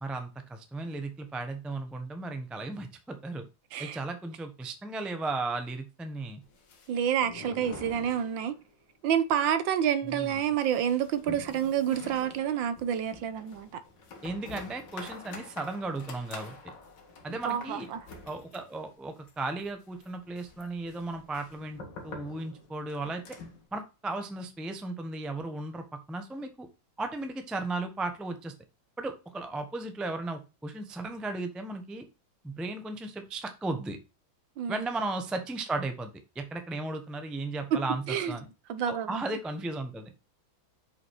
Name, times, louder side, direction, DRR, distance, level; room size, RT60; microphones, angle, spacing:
voice 1, 0.0-3.4 3.8-6.4 10.1-10.3 14.2-16.7 17.2-17.9 18.2-23.4 23.7-26.7 27.0-28.5 29.0-32.0 32.4-34.0 34.7-38.5 38.9-40.1, right 2 dB, ahead, 0.4 m, -35 dB
sound 1, 6.4-8.8 9.1-9.2 9.5-9.6 10.0-23.7, left 3 dB, 65° left, 2.0 m, -47 dB
voice 2, 6.9-8.6 9.0-13.7 17.3-18.1 34.6-34.9 37.7-37.8 38.1-38.4 38.7-39.2, right 9 dB, 75° right, 1.5 m, -28 dB
6.7 x 5.6 x 4.7 m
omnidirectional pair, 2.2 m